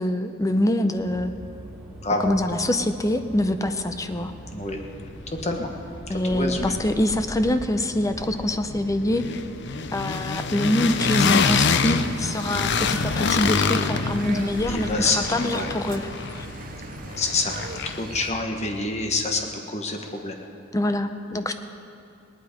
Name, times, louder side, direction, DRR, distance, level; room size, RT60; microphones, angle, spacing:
voice 1, 0.0-1.3 2.2-4.3 6.1-9.2 9.9-14.9 15.1-16.1 16.3-16.5 20.7-21.5, left 1 dB, 15° left, 8 dB, 0.6 m, -24 dB
sound 1, 0.9-18.8, right 1 dB, ahead, 3.4 m, -43 dB
voice 2, 2.0-2.3 4.5-4.8 5.1-5.7 6.2-6.7 14.7-15.7 17.2-17.6 17.8-20.4, left 3 dB, 35° left, 3 dB, 1.3 m, -27 dB
sound 2, 4.2-4.3 4.6-5.7 6.0-18.2, left 5 dB, 65° left, 0.6 m, -27 dB
sound 3, 10.8-18.3, right 4 dB, 45° right, 0.6 m, -40 dB
18.5 x 11.5 x 5.0 m, 2.6 s
head